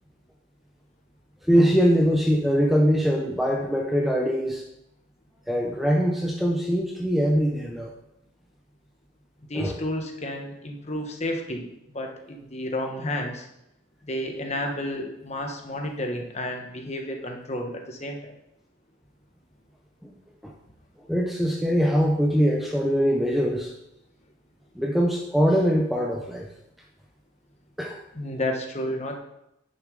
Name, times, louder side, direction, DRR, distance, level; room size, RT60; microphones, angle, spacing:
voice 1, 1.4-4.6 5.5-7.9 9.5-9.7 20.0-20.1 20.4-20.5 21.1-23.7 24.8-26.5 27.8-28.0, equal, ahead, 0 dB, 0.6 m, -22 dB
voice 2, 9.5-13.4 14.0-18.3 28.1-29.1, left 1 dB, 30° left, 2 dB, 1.2 m, -31 dB
10.0 x 6.2 x 3.8 m, 0.84 s
head